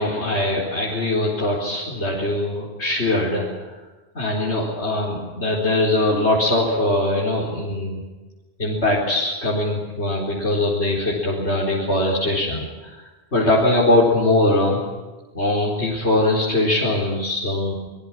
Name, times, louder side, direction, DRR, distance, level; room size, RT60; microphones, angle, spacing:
voice 1, 0.0-3.4 4.1-8.0 8.6-12.9 13.3-14.8 15.3-17.7, left 1 dB, 75° left, -5 dB, 4.7 m, -21 dB
26.5 x 22.0 x 6.2 m, 1.2 s
omnidirectional pair, 1.1 m